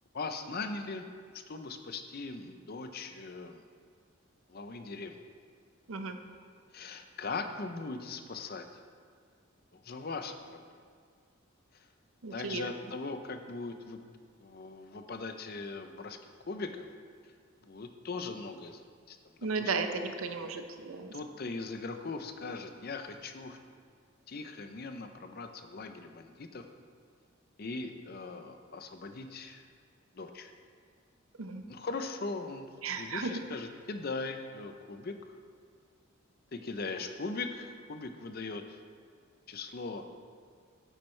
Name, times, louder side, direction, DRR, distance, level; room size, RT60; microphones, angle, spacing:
voice 1, 0.1-1.0 1.3-3.6 4.5-5.2 6.7-8.7 9.7-10.6 11.7-11.9 12.3-14.0 14.4-16.2 16.5-16.9 17.6-19.3 19.6-19.9 21.1-23.6 24.3-26.6 27.6-29.6 30.1-30.5 31.7-32.7 32.9-35.1 36.5-38.8 39.5-40.0, left 3 dB, 45° left, 7 dB, 0.5 m, -40 dB
voice 2, 12.2-12.6 19.4-21.1 31.4-31.6 32.8-33.3, right 4 dB, 80° right, 7 dB, 0.7 m, -34 dB
9.9 x 8.8 x 3.2 m, 2.1 s
head